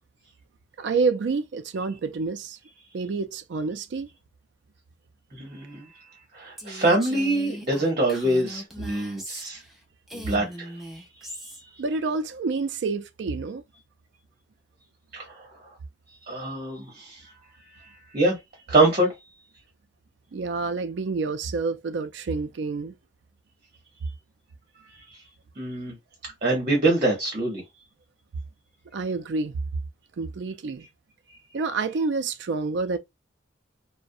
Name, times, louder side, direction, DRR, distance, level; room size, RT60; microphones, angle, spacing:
voice 1, 0.8-2.6 2.9-4.1 11.8-13.6 20.3-22.9 28.9-29.6 30.2-30.9 31.5-33.0, right 4 dB, 65° right, 0.4 m, -28 dB
voice 2, 5.3-5.9 6.3-9.6 10.1-11.4 15.1-15.5 16.3-17.3 17.7-18.4 18.7-19.1 25.1-25.2 25.6-26.0 26.4-27.6, right 2 dB, 40° right, 0.9 m, -25 dB
Female speech woman speaking, 6.6-9.8 10.1-11.6, equal, ahead, 0.6 m, -39 dB
2.4 x 2.1 x 2.5 m
head